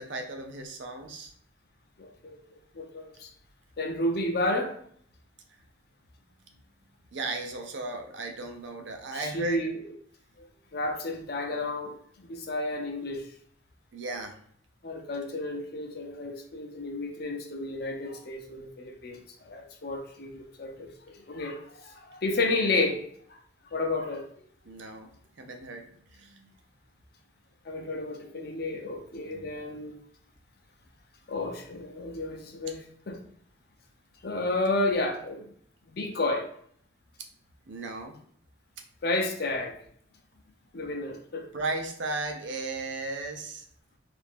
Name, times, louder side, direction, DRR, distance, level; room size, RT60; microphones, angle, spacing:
voice 1, 0.0-1.3 7.1-9.7 13.9-14.4 24.6-25.1 25.4-26.5 29.2-29.5 37.7-38.2 41.5-43.6, right 2 dB, 70° right, 4 dB, 0.6 m, -35 dB
voice 2, 2.0-3.3 3.8-4.7 9.1-9.7 10.4-10.5 10.7-13.3 14.8-23.0 23.3-23.4 23.7-24.2 27.6-29.9 31.3-32.8 33.1-33.2 34.2-35.4 35.9-36.5 39.0-39.8 40.7-41.5, left 2 dB, 50° left, 3 dB, 0.6 m, -31 dB
2.8 x 2.5 x 3.6 m, 0.62 s
head